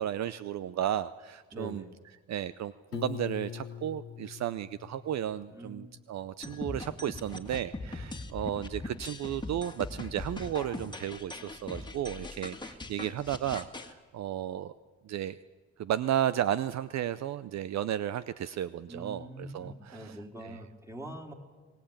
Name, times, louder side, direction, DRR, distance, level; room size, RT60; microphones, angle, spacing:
voice 1, 0.0-1.9 2.3-14.7 15.0-15.4 15.8-20.1 20.4-20.5, right 11 dB, 60° right, 15 dB, 0.7 m, -33 dB
voice 2, 1.5-1.9 5.5-6.0 18.9-21.3, right 1 dB, 10° right, 3 dB, 3.7 m, -44 dB
Piano, 2.9-5.8, left 9 dB, 50° left, 0.8 m, -42 dB
sound 1, 6.4-13.9, left 2 dB, 15° left, 2.0 m, -41 dB
23.5 x 18.5 x 8.8 m, 1.3 s
cardioid pair, 90°, 30 cm